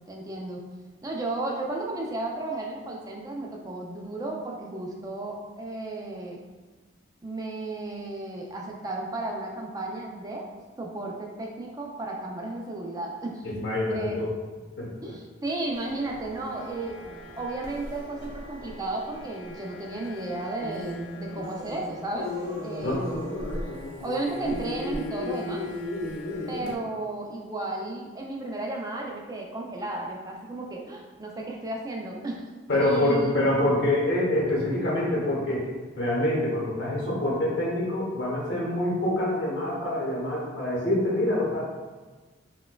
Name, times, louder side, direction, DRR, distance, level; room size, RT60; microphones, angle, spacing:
voice 1, 0.1-0.6 1.0-6.4 7.2-10.5 10.8-13.4 13.9-14.2 15.0-17.0 17.4-22.3 22.6-23.4 24.0-25.6 26.5-32.5 32.8-33.4, right 2 dB, 20° right, -1 dB, 0.4 m, -34 dB
voice 2, 13.4-14.3 14.8-15.1 22.8-23.1 32.7-35.7 36.0-41.6, left 1 dB, 55° left, -4 dB, 1.0 m, -26 dB
sound 1, 15.7-26.8, left 2 dB, 75° left, 0.7 m, -36 dB
4.2 x 2.2 x 2.3 m, 1.3 s
head